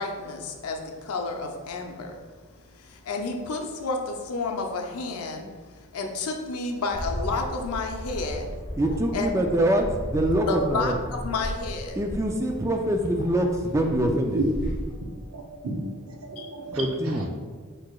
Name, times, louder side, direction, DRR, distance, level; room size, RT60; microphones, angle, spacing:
voice 1, 0.0-2.2 2.5-8.5 9.1-9.3 10.5-12.0 16.4-16.5, left 3 dB, 85° left, 3 dB, 0.6 m, -31 dB
Bark, 6.9-14.9, equal, 40° left, 1.0 m, -35 dB
voice 2, 8.8-9.9 10.1-10.9 12.0-14.4 16.7-17.3, right 1 dB, 15° right, 3 dB, 0.3 m, -24 dB
voice 3, 15.3-17.2, right 3 dB, 75° right, 0 dB, 0.7 m, -33 dB
4.7 x 4.6 x 2.3 m, 1.5 s
head